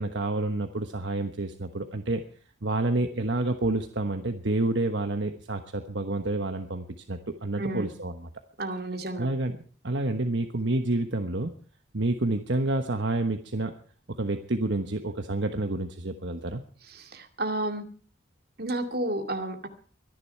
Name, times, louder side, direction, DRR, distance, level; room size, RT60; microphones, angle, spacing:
voice 1, 0.0-2.2 2.6-8.1 9.2-9.6 9.8-11.5 11.9-13.7 14.2-16.6, right 2 dB, 70° right, 6 dB, 1.2 m, -28 dB
voice 2, 7.6-7.9 8.6-9.3 16.9-17.8 18.6-19.7, right 1 dB, 50° right, 5 dB, 2.4 m, -31 dB
24.0 x 10.5 x 4.6 m, 0.42 s
head